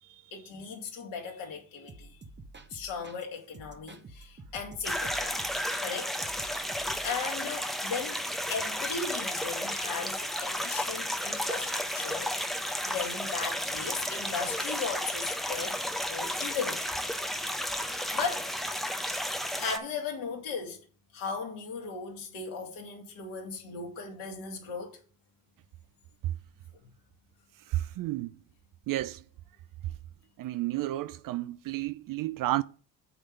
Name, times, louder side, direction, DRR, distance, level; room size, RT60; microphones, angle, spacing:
voice 1, 0.3-2.1 2.7-5.4 5.8-6.2 6.7-8.2 8.5-16.9 17.9-18.5 19.6-20.8 21.1-25.0, left 5 dB, 70° left, 2.8 m, -37 dB
sound 1, 1.9-3.2 3.5-5.9 6.2-7.2, right 3 dB, 20° right, 1.1 m, -49 dB
sound 2, 4.8-19.8, equal, ahead, 0.9 m, -33 dB
voice 2, 27.7-28.4 28.9-29.2 30.4-32.6, right 15 dB, 45° right, 0.5 m, -31 dB
8.7 x 3.6 x 6.6 m
hypercardioid pair, 60°, 50 cm